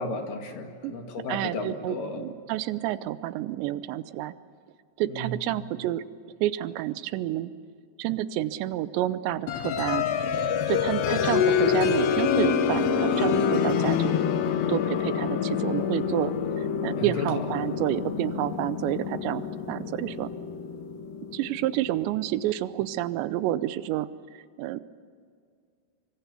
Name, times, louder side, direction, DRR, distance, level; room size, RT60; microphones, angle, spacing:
voice 1, 0.0-2.3 5.1-5.4 17.0-17.5, left 2 dB, 55° left, 4 dB, 3.5 m, -34 dB
voice 2, 1.3-4.3 5.0-6.0 6.4-7.5 8.0-10.0 10.4-14.2 14.7-20.3 21.3-24.1 24.3-24.8, right 14 dB, 85° right, 14 dB, 3.0 m, -29 dB
sound 1, 9.5-22.0, left 7 dB, 75° left, 3.4 m, -26 dB
25.0 x 24.5 x 6.9 m, 2.2 s
omnidirectional pair, 5.1 m